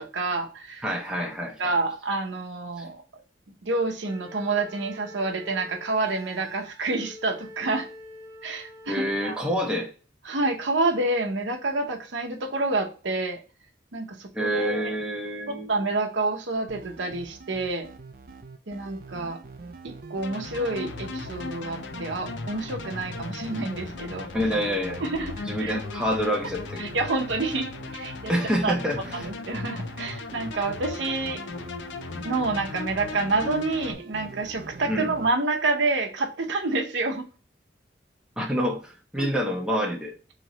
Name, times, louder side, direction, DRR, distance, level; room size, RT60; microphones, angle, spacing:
voice 1, 0.0-0.8 1.6-3.0 3.6-7.9 8.4-9.4 10.2-13.4 13.9-14.9 15.5-17.9 18.7-19.4 19.8-24.3 25.0-25.3 25.6-25.8 26.8-28.3 28.6-28.7 29.1-31.4 32.2-37.3 39.2-39.3, right 3 dB, 80° right, 2 dB, 0.8 m, -28 dB
voice 2, 0.8-1.6 2.8-2.9 8.9-9.9 14.3-15.7 24.3-25.0 25.5-26.8 28.3-29.0 34.9-35.1 38.4-40.1, equal, 5° right, 0 dB, 0.7 m, -27 dB
Wind instrument woodwind instrument, 4.0-9.8, left 1 dB, 20° left, 1.1 m, -46 dB
sound 1, 16.7-35.3, right 4 dB, 50° right, 0.4 m, -44 dB
sound 2, 20.2-33.9, left 4 dB, 75° left, 0.5 m, -37 dB
3.2 x 3.0 x 3.8 m, 0.35 s
head